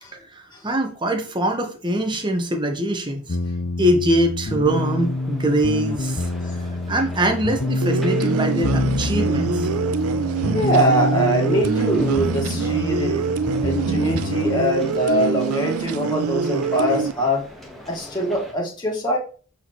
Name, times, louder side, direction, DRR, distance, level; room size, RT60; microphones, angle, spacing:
voice 1, 0.1-3.2 3.8-6.3 6.9-9.7, right 1 dB, 20° right, 5 dB, 1.0 m, -23 dB
sound 1, 3.3-14.6, left 2 dB, 50° left, 0.6 m, -26 dB
sound 2, 4.6-18.5, equal, ahead, 1.3 m, -41 dB
sound 3, 7.8-17.1, right 6 dB, 75° right, 0.4 m, -25 dB
voice 2, 10.5-13.2 13.6-17.4 17.9-19.2, right 1 dB, 20° left, -1 dB, 1.7 m, -22 dB
7.5 x 4.3 x 3.1 m, 0.38 s
head